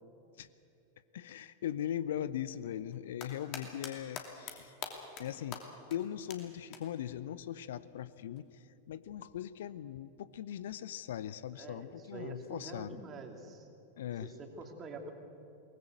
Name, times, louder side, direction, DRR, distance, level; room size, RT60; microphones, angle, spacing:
voice 1, 1.1-4.7 5.2-5.6 5.9-8.5 8.9-13.0 14.0-14.3, left 10 dB, 60° left, 16 dB, 0.6 m, -40 dB
sound 1, 2.9-3.9 4.2-4.5 4.8-5.2 5.5-5.6 5.9-6.0 6.3-6.4 6.7-6.8 8.4-8.5, left 8 dB, 40° left, 2.9 m, -41 dB
voice 2, 11.5-13.7 14.2-15.1, right 3 dB, 25° right, 4 dB, 2.7 m, -46 dB
22.5 x 19.5 x 8.1 m, 2.7 s
figure-of-eight pair, 90°, 0 cm